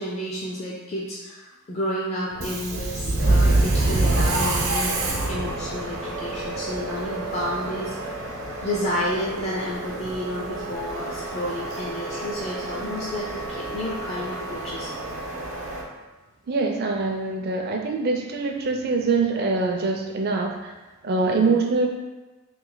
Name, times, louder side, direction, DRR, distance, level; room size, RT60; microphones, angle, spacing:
voice 1, 0.0-5.0 5.3-8.0 8.6-15.0 21.3-21.6, equal, 30° left, -5 dB, 0.4 m, -31 dB
Subway metro underground, 2.3-15.8, right 2 dB, 75° right, 0.8 m, -27 dB
voice 2, 16.5-20.7 21.0-21.9, right 3 dB, 50° right, 2 dB, 0.5 m, -24 dB
3.1 x 2.8 x 3.8 m, 1.2 s
head